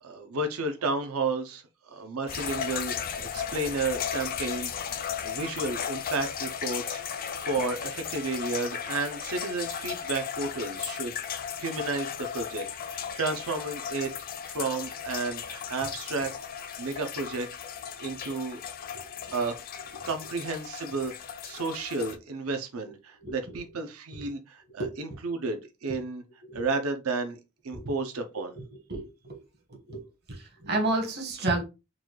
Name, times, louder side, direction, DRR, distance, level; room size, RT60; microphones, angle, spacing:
voice 1, 0.0-7.0 7.4-14.1 14.4-17.5 18.0-18.6 19.3-19.6 20.0-26.2 26.5-27.4 27.6-28.5, right 3 dB, 75° right, 6 dB, 0.6 m, -32 dB
sound 1, 2.3-22.2, left 8 dB, 45° left, 0.4 m, -36 dB
voice 2, 23.2-23.6 24.8-24.9 25.8-26.0 26.5-26.6 27.7-27.9 28.5-28.6 28.9-29.4 29.7-31.6, right 2 dB, 50° right, 0 dB, 1.0 m, -31 dB
4.0 x 2.3 x 3.0 m, 0.26 s
head